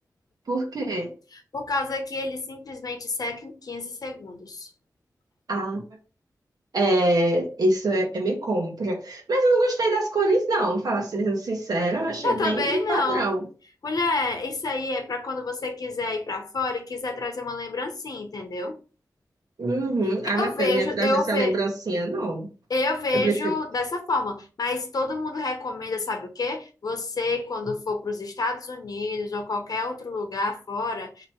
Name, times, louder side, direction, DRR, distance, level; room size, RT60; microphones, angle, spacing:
voice 1, 0.5-1.1 5.5-5.8 6.7-13.5 19.6-22.5 23.1-23.6, right 2 dB, 70° right, 1.1 m, -24 dB
voice 2, 1.5-4.7 12.2-13.3 13.8-18.8 20.4-21.5 22.7-31.3, left 3 dB, 65° left, 0.9 m, -28 dB
3.0 x 2.9 x 4.3 m
cardioid pair, 55°, 7 cm